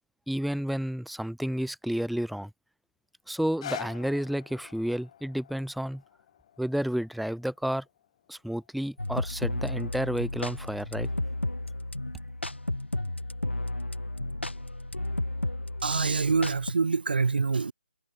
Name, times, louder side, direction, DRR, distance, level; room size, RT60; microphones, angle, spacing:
voice 1, 0.3-2.5 3.3-6.0 6.6-7.8 8.3-11.1, equal, ahead, 0.4 m, -31 dB
sound 1, 3.3-9.4 10.1-10.2, left 10 dB, 30° left, 3.3 m, -46 dB
sound 2, 9.0-16.7, left 2 dB, 80° left, 4.1 m, -33 dB
voice 2, 15.8-17.7, right 4 dB, 60° right, 0.8 m, -25 dB
figure-of-eight pair, 150°, 6 cm